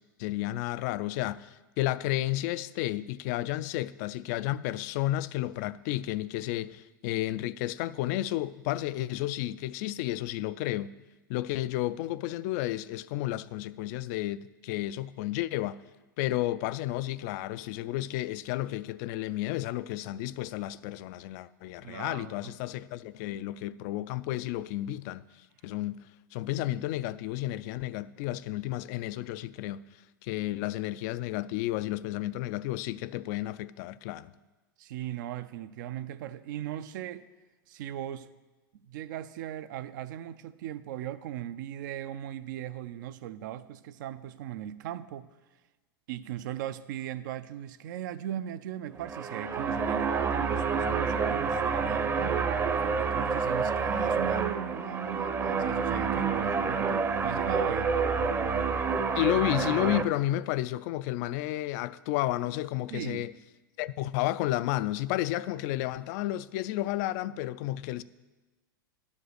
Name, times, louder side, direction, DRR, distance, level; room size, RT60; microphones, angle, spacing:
voice 1, 0.2-10.9 11.3-15.8 16.2-25.2 25.6-26.0 26.3-29.8 30.2-34.3 59.1-63.3 63.8-68.0, left 15 dB, 55° left, 0.4 m, -32 dB
voice 2, 21.8-22.5 34.8-37.3 37.7-38.3 38.7-45.3 46.1-52.6 53.0-57.9 62.9-63.3, right 11 dB, 65° right, 0.5 m, -38 dB
sound 1, 48.9-60.0, right 5 dB, 20° right, 0.7 m, -28 dB
11.0 x 5.3 x 6.5 m
hypercardioid pair, 100°, 11 cm